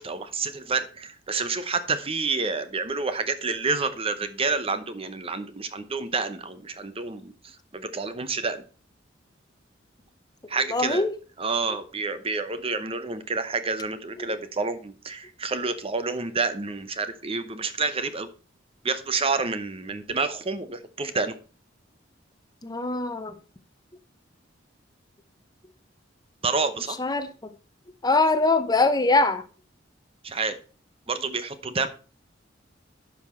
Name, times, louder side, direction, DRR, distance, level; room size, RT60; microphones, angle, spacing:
voice 1, 0.0-8.6 10.5-11.1 11.4-18.3 18.8-21.4 26.4-27.0 30.2-30.6 31.1-31.9, right 4 dB, 30° right, 0.8 m, -29 dB
voice 2, 10.7-11.1 22.6-23.3 27.0-27.3 28.0-29.4, left 3 dB, 20° left, 0.8 m, -22 dB
11.0 x 5.7 x 4.3 m
head